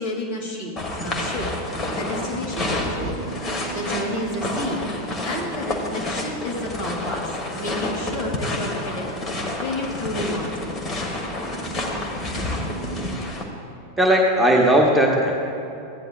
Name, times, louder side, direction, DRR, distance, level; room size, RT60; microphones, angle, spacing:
voice 1, 0.0-1.5 1.9-4.9 5.2-10.9, left 1 dB, 45° left, -1 dB, 2.4 m, -31 dB
sound 1, 0.8-13.4, left 1 dB, 25° left, 1.4 m, -29 dB
voice 2, 14.0-15.3, right 1 dB, 5° right, -2 dB, 1.0 m, -17 dB
15.5 x 10.0 x 2.3 m, 2.6 s
figure-of-eight pair, 90°, 0 cm